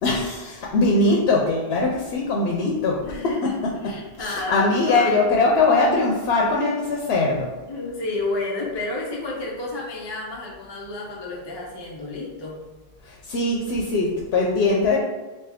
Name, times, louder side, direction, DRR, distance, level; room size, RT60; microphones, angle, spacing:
voice 1, 0.0-3.0 3.2-3.7 4.2-7.5 13.0-15.0, left 3 dB, 80° left, -1 dB, 0.8 m, -21 dB
voice 2, 3.0-5.3 7.7-12.6, left 2 dB, 35° left, -3 dB, 0.4 m, -31 dB
3.4 x 2.8 x 3.5 m, 1.2 s
omnidirectional pair, 1.1 m